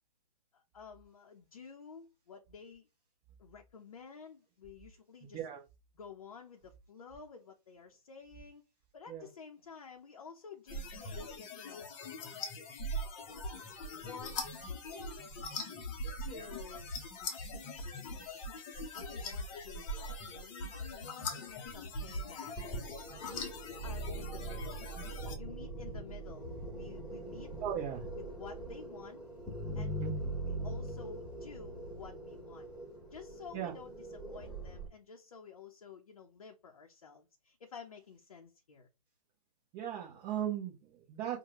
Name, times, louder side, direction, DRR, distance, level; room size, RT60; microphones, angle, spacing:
voice 1, 0.5-2.9 3.4-5.4 6.0-8.6 8.9-11.9 13.9-14.5 16.2-16.9 17.3-18.5 18.9-22.6 23.2-24.8 25.4-27.5 28.1-29.2 29.7-30.1 30.4-32.7 33.1-38.9, left 6 dB, 60° left, 0.7 m, -51 dB
sound 1, 10.7-25.4, left 1 dB, 20° left, 0.8 m, -41 dB
sound 2, 22.6-34.9, right 1 dB, ahead, 1.4 m, -42 dB
voice 2, 27.6-28.0 30.0-30.1 33.5-33.7 39.7-41.4, right 10 dB, 20° right, 0.7 m, -37 dB
4.7 x 2.2 x 2.8 m
figure-of-eight pair, 130°, 20 cm